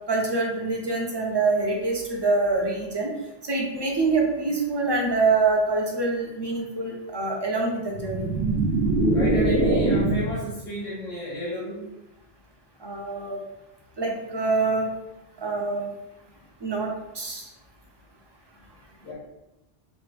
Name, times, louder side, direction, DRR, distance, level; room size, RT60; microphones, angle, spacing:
voice 1, 0.1-3.1 3.4-8.3 9.0-9.1 12.8-13.4 14.0-14.9 15.4-15.9 16.6-17.5, right 3 dB, 25° right, 0 dB, 0.8 m, -25 dB
sound 1, 7.9-10.5, right 2 dB, 75° right, 0.9 m, -22 dB
voice 2, 9.1-11.8 19.0-19.1, equal, 45° left, -8 dB, 1.5 m, -32 dB
5.1 x 2.8 x 3.3 m, 0.94 s
omnidirectional pair, 1.0 m